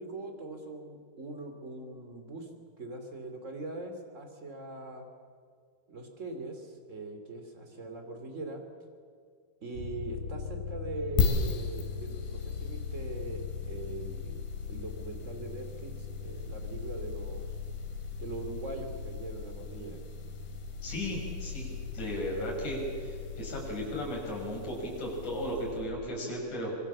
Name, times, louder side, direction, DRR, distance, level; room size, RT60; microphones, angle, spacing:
voice 1, 0.0-2.5 2.8-5.1 5.9-8.6 9.6-14.4 14.7-17.5 18.2-20.0, right 2 dB, 20° right, 5 dB, 2.6 m, -41 dB
sound 1, 9.7-26.0, left 5 dB, 80° right, 7.3 m, -40 dB
sound 2, 11.2-25.9, left 5 dB, 70° left, 4.0 m, -39 dB
voice 2, 20.8-26.8, equal, 50° left, -2 dB, 7.8 m, -35 dB
25.5 x 23.0 x 7.4 m, 2.1 s
omnidirectional pair, 4.4 m